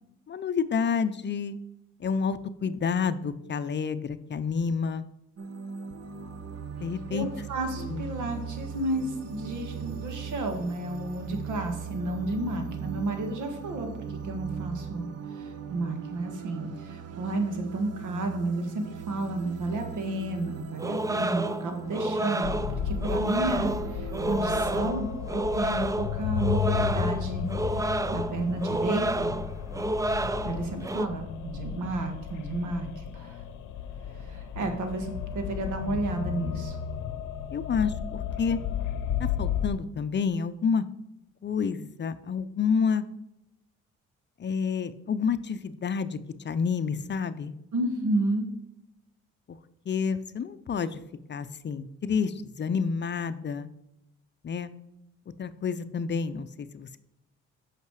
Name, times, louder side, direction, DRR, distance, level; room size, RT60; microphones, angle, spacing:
voice 1, 0.3-1.6 2.0-5.0 6.8-7.3 7.9-8.1 37.5-38.6 39.2-40.9 41.4-43.0 44.4-46.2 46.4-47.5 49.9-51.0 51.3-53.7 54.4-54.7 55.4-57.0, left 6 dB, 35° left, 12 dB, 0.5 m, -29 dB
sound 1, 5.4-24.9, right 6 dB, 55° right, 0.9 m, -39 dB
voice 2, 7.1-22.5 22.8-27.5 27.8-29.3 30.4-33.5 34.2-36.8 47.7-48.5, right 2 dB, 80° right, 5 dB, 1.8 m, -32 dB
sound 2, 20.8-31.1, right 1 dB, 10° right, 0.4 m, -30 dB
sound 3, 22.4-39.7, left 8 dB, 80° left, 0.7 m, -33 dB
8.3 x 5.9 x 4.8 m, 0.87 s
cardioid pair, 90°, 30 cm